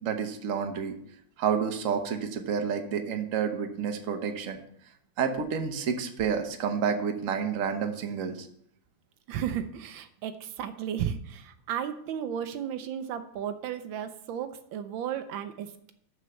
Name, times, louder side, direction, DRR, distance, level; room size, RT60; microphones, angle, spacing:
voice 1, 0.0-1.0 1.4-4.6 5.2-8.5, right 7 dB, 50° right, 5 dB, 1.2 m, -29 dB
voice 2, 9.3-15.9, right 9 dB, 80° right, 10 dB, 1.4 m, -34 dB
6.5 x 6.4 x 6.9 m, 0.67 s
omnidirectional pair, 2.1 m